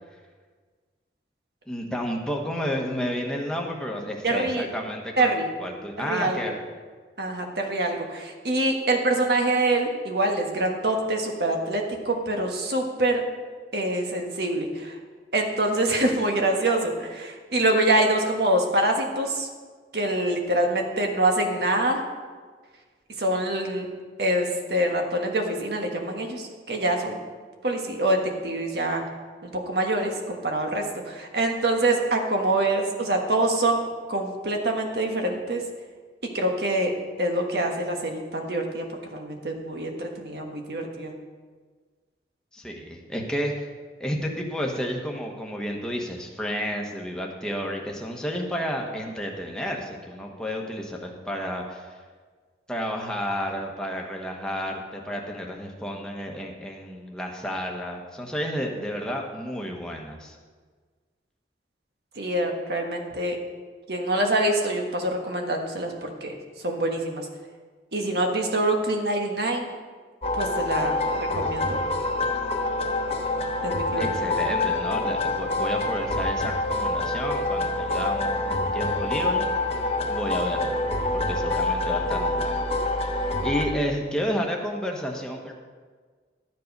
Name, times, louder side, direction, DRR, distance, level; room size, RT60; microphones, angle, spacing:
voice 1, 1.7-6.6 42.5-43.7 44.0-51.9 52.7-60.4 74.0-79.5 80.1-80.8 81.1-82.6 83.1-85.5, equal, 5° left, 0 dB, 1.2 m, -31 dB
voice 2, 4.2-4.7 5.2-5.5 6.0-6.4 7.2-13.2 13.7-15.0 15.3-19.5 19.9-22.0 23.2-23.9 24.2-27.2 27.6-29.0 29.4-35.6 36.3-36.9 37.2-41.1 62.2-63.4 63.9-66.3 66.6-67.2 67.9-69.7 70.4-71.8 73.6-74.0, right 1 dB, 65° right, 2 dB, 1.5 m, -25 dB
sound 1, 70.2-83.6, left 2 dB, 35° left, 1.1 m, -26 dB
12.0 x 7.6 x 5.4 m, 1.5 s
head